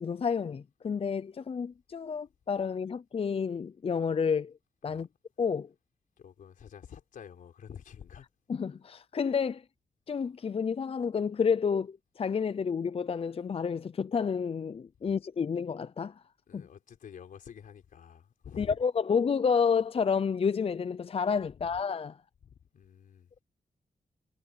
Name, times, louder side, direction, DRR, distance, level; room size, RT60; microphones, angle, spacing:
voice 1, 0.0-4.5 4.8-5.1 5.4-5.7 8.5-9.6 10.1-16.1 16.5-16.6 18.6-22.2, left 6 dB, 45° left, 0.5 m, -30 dB
voice 2, 6.2-8.3 16.5-18.8 21.6-21.8 22.4-23.3, left 8 dB, 85° left, 4.0 m, -48 dB
cardioid pair, 70°, 14 cm